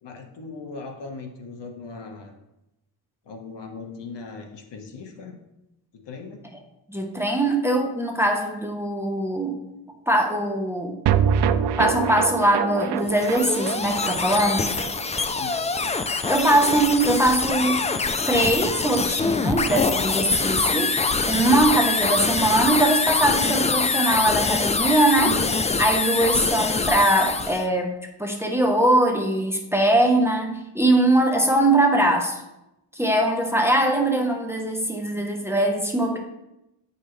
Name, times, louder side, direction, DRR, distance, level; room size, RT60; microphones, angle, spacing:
voice 1, 0.0-2.3 3.2-5.4 5.9-6.4 15.4-15.7, left 4 dB, 70° left, 3 dB, 1.3 m, -39 dB
voice 2, 6.9-9.6 10.1-11.0 11.8-14.7 16.1-17.8 18.3-20.9 21.2-25.5 25.8-27.9 28.2-32.4 32.9-36.2, right 1 dB, 5° right, 1 dB, 0.9 m, -21 dB
sound 1, 11.1-17.5 17.8-17.9 18.1-18.2, right 8 dB, 65° right, 0.5 m, -27 dB
sound 2, 13.0-27.6, left 4 dB, 15° left, 0.3 m, -24 dB
8.9 x 5.5 x 3.2 m, 0.91 s
cardioid pair, 110°, 44 cm